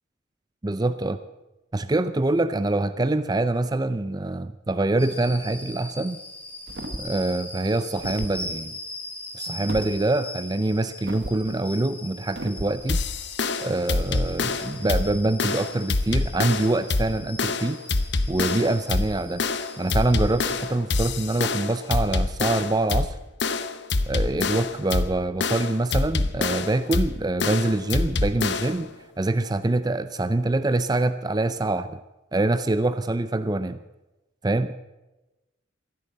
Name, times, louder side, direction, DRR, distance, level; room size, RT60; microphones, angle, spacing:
voice 1, 0.6-1.2 1.7-6.2 7.0-8.7 9.3-13.0 13.6-17.8 18.3-19.4 19.8-23.2 24.1-32.0 32.3-33.8 34.4-34.8, right 2 dB, 20° right, 12 dB, 0.5 m, -25 dB
sound 1, 5.0-20.6, left 1 dB, 5° left, 2.9 m, -40 dB
sound 2, 6.7-7.2 8.0-8.4 9.7-9.9 11.1-11.4 12.4-12.8, right 1 dB, 55° right, 1.2 m, -34 dB
sound 3, 12.9-28.9, left 3 dB, 60° left, 0.9 m, -26 dB
15.5 x 11.5 x 7.8 m, 1.0 s
head